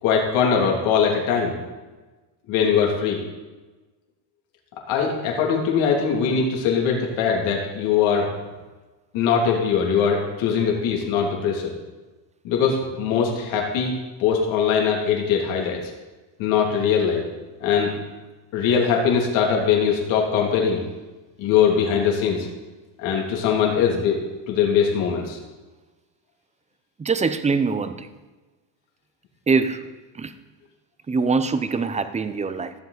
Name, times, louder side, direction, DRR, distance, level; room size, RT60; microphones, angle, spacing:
voice 1, 0.0-1.5 2.5-3.2 4.9-8.3 9.1-11.7 12.4-13.9 14.2-15.8 16.4-17.2 17.6-17.9 18.5-20.8 21.4-22.5 23.0-24.2 24.5-25.4, left 7 dB, 70° left, -1 dB, 2.9 m, -21 dB
voice 2, 27.0-28.1 29.5-30.3 31.1-32.7, right 4 dB, 15° right, 11 dB, 0.7 m, -23 dB
15.0 x 7.9 x 4.0 m, 1.2 s
supercardioid pair, 105°, 50 cm